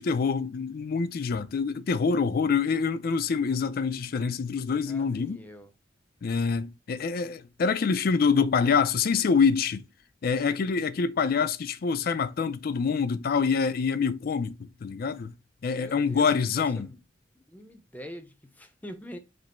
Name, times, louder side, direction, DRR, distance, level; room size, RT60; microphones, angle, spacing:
voice 1, 0.0-5.4 6.2-9.8 10.2-15.3 15.6-16.9, left 5 dB, 55° left, 0.4 m, -26 dB
voice 2, 4.9-5.7 15.7-17.0 17.3-19.2, equal, 10° left, 0.6 m, -44 dB
5.0 x 2.0 x 4.2 m
head